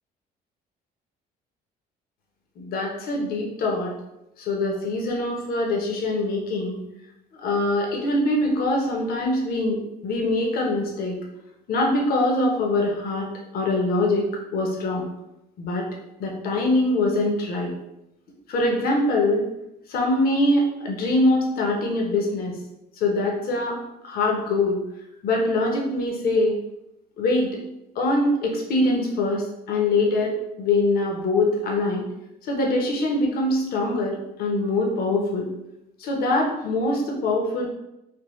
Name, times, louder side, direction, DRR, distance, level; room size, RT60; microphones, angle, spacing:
voice 1, 2.6-3.9 4.4-6.8 7.3-11.2 11.7-13.3 13.5-15.0 15.6-15.9 16.2-17.7 18.5-19.4 19.9-22.6 23.0-23.8 24.0-24.8 25.2-26.5 27.2-27.5 28.0-32.1 32.4-35.5 36.0-37.7, left 2 dB, 60° left, 0 dB, 0.7 m, -23 dB
3.4 x 2.1 x 3.0 m, 0.88 s
cardioid pair, 110°, 17 cm